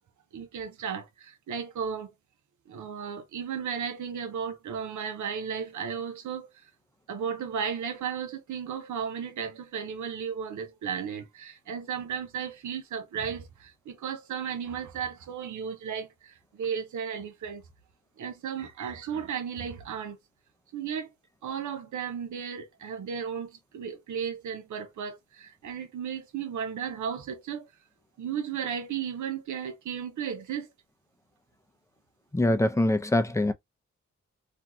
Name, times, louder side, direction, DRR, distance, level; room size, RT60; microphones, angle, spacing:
voice 1, 0.3-2.1 2.7-6.5 7.1-16.1 16.6-17.6 18.2-20.2 20.7-21.1 21.4-27.7 28.2-30.7, right 7 dB, 90° right, 0.6 m, -34 dB
voice 2, 32.3-33.5, left 1 dB, 10° left, 0.5 m, -23 dB
2.6 x 2.3 x 2.8 m
cardioid pair, 40°, 29 cm